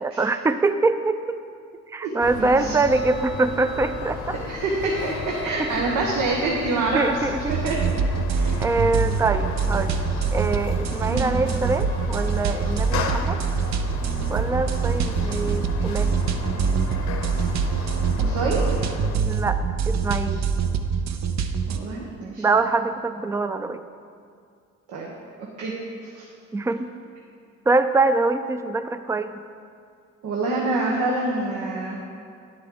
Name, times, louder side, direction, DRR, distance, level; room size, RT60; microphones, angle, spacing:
voice 1, 0.0-1.4 1.9-4.4 5.6-5.7 6.7-7.5 8.6-10.0 10.3-13.4 14.3-16.1 19.3-19.6 19.9-20.4 22.4-23.8 26.5-26.9 27.7-29.4, right 3 dB, 10° right, 10 dB, 0.4 m, -24 dB
voice 2, 2.0-2.7 4.3-7.8 8.3-8.6 11.1-11.3 18.2-18.6 21.7-22.4 24.9-25.1 25.4-25.7 26.1-26.2 30.2-32.0, right 3 dB, 85° right, -3 dB, 1.2 m, -26 dB
sound 1, 2.2-19.2, left 5 dB, 65° left, 0.9 m, -34 dB
sound 2, 7.4-21.8, right 5 dB, 65° right, 0.7 m, -25 dB
10.0 x 7.8 x 3.8 m, 2.3 s
cardioid pair, 90°, 30 cm